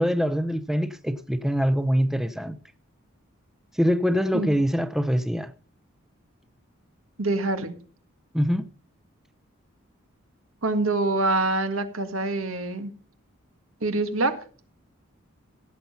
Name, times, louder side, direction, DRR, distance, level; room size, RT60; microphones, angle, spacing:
voice 1, 0.0-2.6 3.7-5.5 8.3-8.6, equal, ahead, 0.6 m, -24 dB
voice 2, 7.2-7.7 10.6-12.9 13.8-14.4, right 2 dB, 85° right, 1.8 m, -25 dB
16.5 x 7.2 x 5.6 m
head